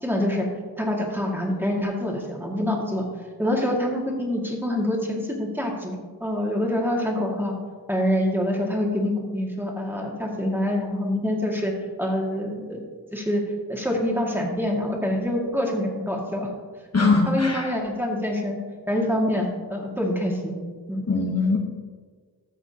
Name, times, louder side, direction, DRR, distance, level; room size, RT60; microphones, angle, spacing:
voice 1, 0.0-0.5 0.8-3.0 3.4-7.5 7.9-11.7 12.0-12.8 13.1-13.4 13.7-16.5 17.0-18.6 18.9-20.6 20.9-21.1, left 1 dB, 5° right, -1 dB, 1.9 m, -26 dB
voice 2, 16.9-17.7 21.1-21.6, left 3 dB, 40° left, 0 dB, 1.0 m, -21 dB
14.5 x 6.2 x 2.8 m, 1.5 s
cardioid pair, 55°, 39 cm